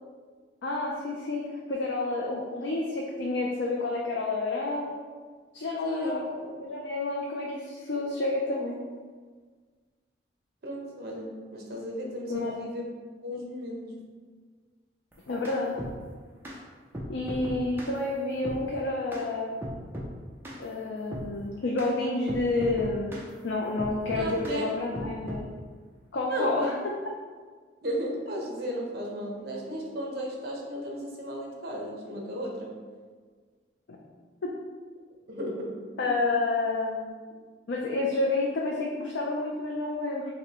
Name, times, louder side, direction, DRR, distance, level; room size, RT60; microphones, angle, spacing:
voice 1, 0.6-4.9 5.5-6.2 6.6-8.8 12.3-12.5 15.3-15.8 17.1-19.6 20.6-23.1 23.4-25.4 26.1-26.7 33.9-34.0 34.4-34.5 36.0-37.1 37.7-40.3, left 2 dB, 75° left, -2 dB, 0.4 m, -29 dB
voice 2, 5.8-6.2 10.6-12.9 13.2-13.9 24.1-24.7 26.3-26.7 27.8-32.8 35.3-36.1, equal, 55° right, -1 dB, 0.8 m, -34 dB
sound 1, 15.1-16.0 16.4-16.6 16.9-18.0 18.4-18.6 19.1-19.3 19.6-20.1 20.4-20.6 21.1-21.3 21.8-21.9 22.3-23.3 23.8-24.6 24.9-25.5, equal, 10° right, 0.5 m, -37 dB
5.8 x 2.1 x 2.9 m, 1.5 s
head